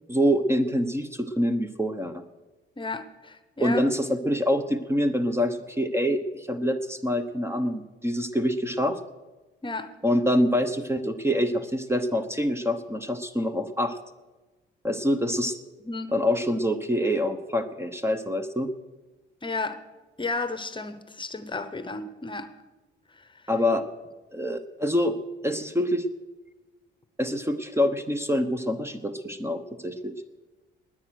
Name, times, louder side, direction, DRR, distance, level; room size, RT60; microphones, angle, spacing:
voice 1, 0.1-2.2 3.6-9.0 10.0-14.0 14.8-15.5 16.1-18.7 23.5-23.8 24.3-25.2 25.4-26.0 27.2-30.1, equal, 15° right, 9 dB, 1.0 m, -25 dB
voice 2, 2.8-3.8 9.6-9.9 15.8-16.1 19.4-19.8 20.2-22.5, left 3 dB, 25° left, 11 dB, 1.0 m, -32 dB
20.0 x 8.8 x 6.4 m, 1.2 s
cardioid pair, 90°, 20 cm